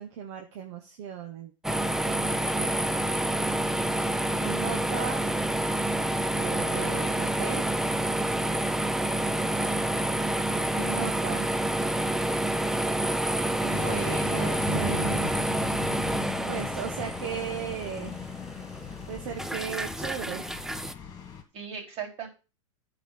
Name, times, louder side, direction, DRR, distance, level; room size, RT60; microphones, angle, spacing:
voice 1, 0.0-1.5 2.1-2.3 2.6-2.8 4.4-5.3 6.3-7.7 10.8-11.6 13.8-15.2 16.5-18.2 19.1-20.6, right 8 dB, 60° right, 4 dB, 1.5 m, -37 dB
sound 1, 1.6-20.9, right 1 dB, 5° right, 0.5 m, -28 dB
voice 2, 13.5-15.3 21.5-22.3, right 4 dB, 40° right, 0 dB, 4.6 m, -36 dB
sound 2, 13.7-21.4, left 6 dB, 25° left, 2.4 m, -38 dB
10.0 x 5.0 x 7.8 m, 0.32 s
hypercardioid pair, 115°, 16 cm